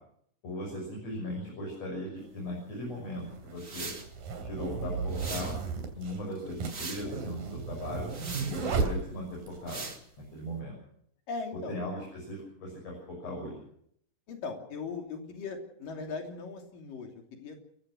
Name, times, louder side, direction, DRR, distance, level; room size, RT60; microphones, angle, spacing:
voice 1, 0.4-3.9 4.4-5.6 5.9-8.1 8.5-9.9 10.3-10.8 11.5-13.6, left 1 dB, 50° left, -1 dB, 7.6 m, -38 dB
sound 1, 2.2-2.3 3.2-9.6, right 4 dB, 80° right, 4.9 m, -34 dB
sound 2, 3.6-4.1 5.1-5.6 6.3-7.1 8.1-8.6 9.7-10.0, right 4 dB, 30° right, 1.9 m, -40 dB
voice 2, 11.3-11.8 14.3-17.6, left 4 dB, 80° left, 3 dB, 4.7 m, -39 dB
29.0 x 15.5 x 6.4 m, 0.67 s
omnidirectional pair, 3.9 m